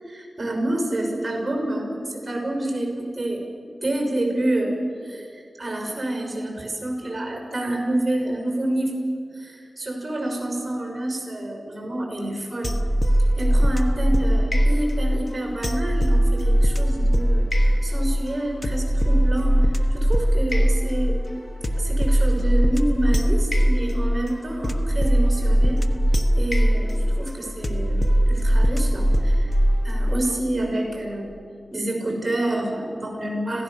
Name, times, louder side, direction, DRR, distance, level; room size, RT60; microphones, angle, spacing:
voice 1, 0.1-3.5 3.8-9.0 9.3-12.8 13.2-21.2 21.8-25.8 26.3-29.6 29.8-31.3 31.7-33.6, right 1 dB, 20° right, 2 dB, 6.0 m, -28 dB
sound 1, 12.6-30.4, equal, 25° left, 1.3 m, -20 dB
26.5 x 17.0 x 7.0 m, 2.5 s
wide cardioid pair, 120°, 0 cm